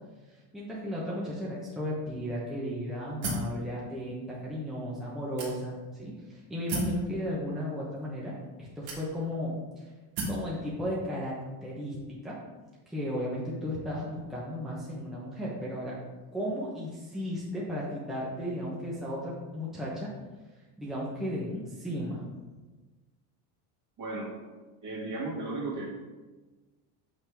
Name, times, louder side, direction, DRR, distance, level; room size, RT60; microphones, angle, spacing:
voice 1, 0.3-9.9 10.2-12.4 12.9-16.0 16.3-20.1 20.8-22.2, equal, ahead, -6 dB, 0.9 m, -35 dB
sound 1, 3.2-3.6 4.3-4.4 5.4-5.9 6.7-7.0 8.0-8.1 8.9-9.4 10.2-10.5, right 1 dB, 70° right, 2.1 m, -33 dB
voice 2, 24.0-24.4 24.8-25.9, right 2 dB, 40° right, -3 dB, 2.2 m, -35 dB
6.5 x 5.8 x 3.5 m, 1.3 s
cardioid pair, 140°, 48 cm